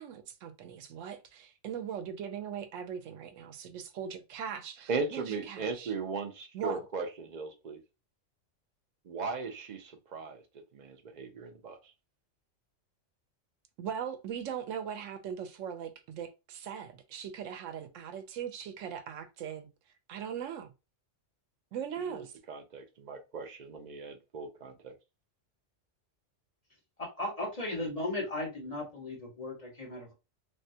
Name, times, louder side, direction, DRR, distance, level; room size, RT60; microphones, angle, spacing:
voice 1, 0.0-5.9 6.5-6.9 13.8-19.7 20.1-20.7 21.7-22.3, right 8 dB, 85° right, 1.0 m, -40 dB
voice 2, 4.9-7.8 9.1-10.4 10.7-11.8 22.1-24.9, right 4 dB, 60° right, 0.5 m, -37 dB
voice 3, 27.2-30.1, left 1 dB, 30° left, 1.2 m, -36 dB
3.4 x 2.2 x 2.7 m
omnidirectional pair, 1.3 m